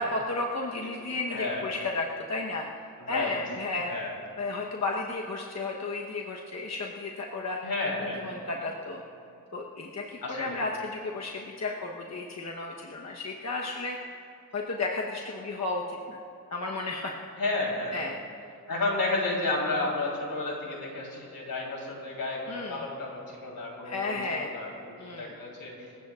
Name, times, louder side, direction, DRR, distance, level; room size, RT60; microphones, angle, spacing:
voice 1, 0.0-2.7 3.1-4.0 4.4-7.6 8.2-9.0 9.5-14.0 14.5-16.2 16.5-17.1 17.9-18.2 22.5-22.8 23.8-24.5 25.0-25.3, left 3 dB, 50° left, -1 dB, 1.1 m, -33 dB
voice 2, 1.3-1.7 3.0-3.4 3.8-4.1 7.6-8.2 10.2-10.6 17.4-18.0 18.7-25.7, left 2 dB, 75° left, -2 dB, 3.6 m, -32 dB
27.0 x 15.5 x 2.5 m, 2.7 s
wide cardioid pair, 135°, 35 cm